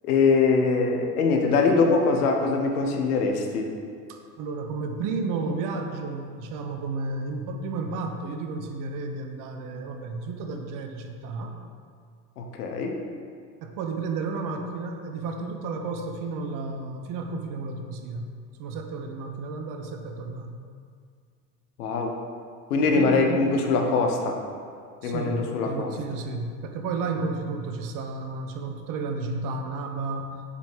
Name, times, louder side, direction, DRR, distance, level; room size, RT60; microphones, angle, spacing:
voice 1, 0.0-3.7 12.4-13.0 21.8-22.1 22.7-24.4 25.0-25.9, left 4 dB, 70° left, 3 dB, 0.9 m, -23 dB
voice 2, 4.1-11.5 13.6-18.3 18.6-20.6 22.8-23.4 25.0-30.4, right 3 dB, 45° right, 4 dB, 0.8 m, -32 dB
6.7 x 5.1 x 3.3 m, 2.2 s
figure-of-eight pair, 70°, 47 cm